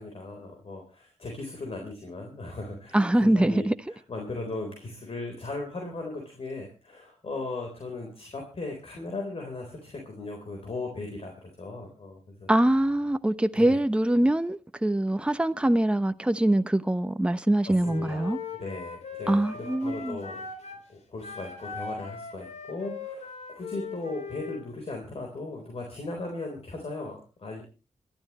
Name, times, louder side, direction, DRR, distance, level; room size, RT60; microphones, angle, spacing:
voice 1, 0.0-12.5 13.5-13.8 17.7-20.4 20.9-27.6, left 2 dB, 60° left, 3.9 m, -37 dB
voice 2, 2.9-3.7 12.5-18.4 19.3-20.2, right 1 dB, 10° right, 0.9 m, -23 dB
Wind instrument woodwind instrument, 17.8-20.8 21.2-24.6, left 5 dB, 75° left, 3.7 m, -39 dB
25.5 x 12.0 x 3.1 m
cardioid pair, 55°, 12 cm